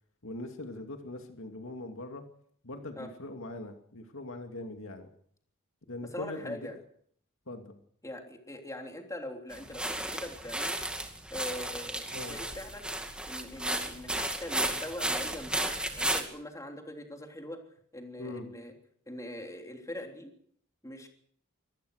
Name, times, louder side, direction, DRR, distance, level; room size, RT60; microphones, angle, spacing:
voice 1, 0.2-2.2 2.6-5.1 5.9-6.7 7.5-7.8 12.1-12.4 18.2-18.5, left 2 dB, 65° left, 5 dB, 2.5 m, -41 dB
voice 2, 6.1-6.8 8.0-10.8 11.3-12.9 13.3-17.6 17.9-18.7 19.1-20.3 20.8-21.1, left 1 dB, 15° left, 3 dB, 3.3 m, -42 dB
sound 1, 9.5-16.2, right 1 dB, 5° right, 2.3 m, -34 dB
24.0 x 18.5 x 6.5 m, 0.65 s
head